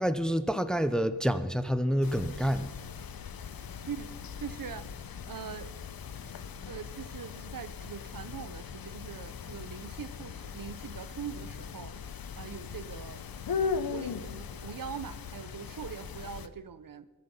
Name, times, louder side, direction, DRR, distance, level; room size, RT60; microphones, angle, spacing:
voice 1, 0.0-2.7, equal, ahead, 11 dB, 0.7 m, -28 dB
sound 1, 2.0-16.5, left 6 dB, 75° left, 0.8 m, -39 dB
voice 2, 4.4-4.9 5.3-5.7 6.7-11.9 12.4-13.2 13.8-17.0, right 7 dB, 65° right, 13 dB, 0.8 m, -42 dB
22.5 x 11.0 x 5.6 m, 1.2 s
wide cardioid pair, 120°, 36 cm